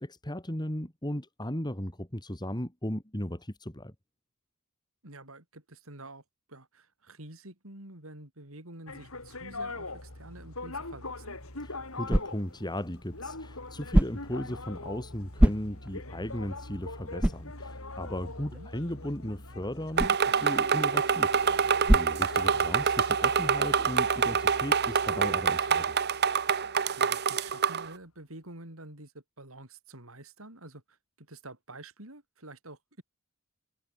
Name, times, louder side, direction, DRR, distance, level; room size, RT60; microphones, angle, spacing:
voice 1, 0.0-3.9 11.6-25.9, left 1 dB, 20° left, 3.1 m, -36 dB
voice 2, 5.0-6.2 6.5-11.4 18.5-18.7 27.0-33.0, right 2 dB, 65° right, 5.7 m, -48 dB
sound 1, 8.9-27.5, left 2 dB, 75° left, 6.3 m, -43 dB
sound 2, 11.2-23.0, right 1 dB, 5° right, 0.3 m, -31 dB
sound 3, 20.0-27.9, right 6 dB, 50° right, 1.1 m, -26 dB
head